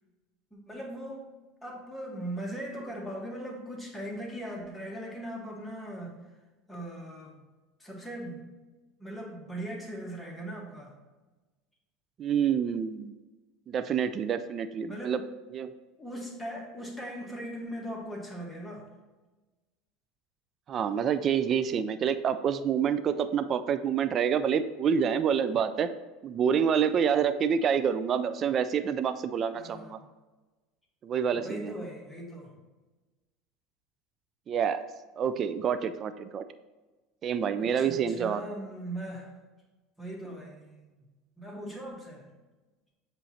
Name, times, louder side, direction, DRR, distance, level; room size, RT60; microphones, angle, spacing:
voice 1, 0.5-1.3 1.6-6.2 6.7-7.4 7.8-8.5 9.0-10.9 14.9-15.3 16.0-18.9 29.5-30.0 31.3-32.5 37.6-39.3 40.0-40.9 41.4-42.3, right 1 dB, 5° left, -3 dB, 1.8 m, -39 dB
voice 2, 12.2-13.1 13.7-15.2 15.5-15.7 20.7-25.9 26.2-30.0 31.0-31.8 34.5-34.8 35.2-36.4 37.2-38.4, right 7 dB, 40° right, 11 dB, 0.3 m, -27 dB
7.6 x 3.1 x 4.3 m, 1.2 s
hypercardioid pair, 75°, 0 cm